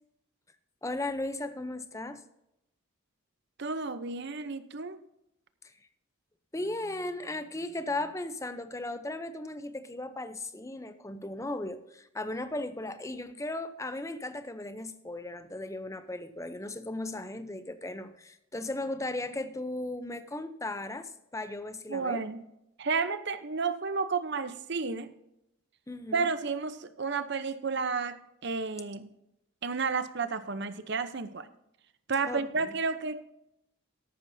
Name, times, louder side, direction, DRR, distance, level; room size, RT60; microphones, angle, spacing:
voice 1, 0.8-2.2 6.5-22.2 25.9-26.3 32.3-32.8, left 2 dB, 15° left, 10 dB, 0.6 m, -36 dB
voice 2, 3.6-5.0 21.9-22.5 22.8-25.1 26.1-29.1 29.6-31.5 32.1-33.2, right 4 dB, 50° right, 12 dB, 0.7 m, -32 dB
13.5 x 11.5 x 2.7 m, 0.82 s
head